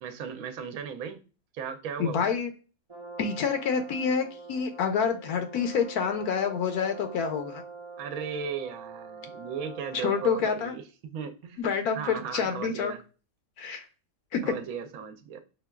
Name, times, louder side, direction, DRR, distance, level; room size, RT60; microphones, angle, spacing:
voice 1, 0.0-1.2 1.5-2.4 8.0-11.6 11.9-13.0 14.4-15.4, right 7 dB, 70° right, 1.0 m, -36 dB
voice 2, 2.0-2.5 3.2-7.6 10.0-10.7 11.6-12.9 13.6-13.8 14.3-14.5, left 6 dB, 85° left, 1.1 m, -27 dB
Brass instrument, 2.9-10.7, right 4 dB, 45° right, 0.3 m, -44 dB
5.8 x 2.3 x 2.2 m
omnidirectional pair, 1.6 m